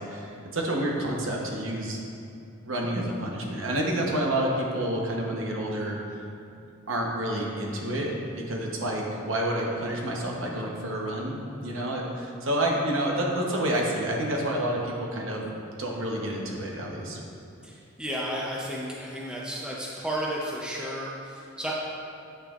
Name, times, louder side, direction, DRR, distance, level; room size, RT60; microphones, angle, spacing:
voice 1, 0.0-2.0 2.6-6.2 6.9-15.5 15.8-17.2, right 1 dB, 65° right, -1 dB, 1.0 m, -29 dB
voice 2, 17.6-21.7, equal, 5° right, -4 dB, 0.6 m, -33 dB
8.4 x 6.4 x 2.4 m, 2.6 s
head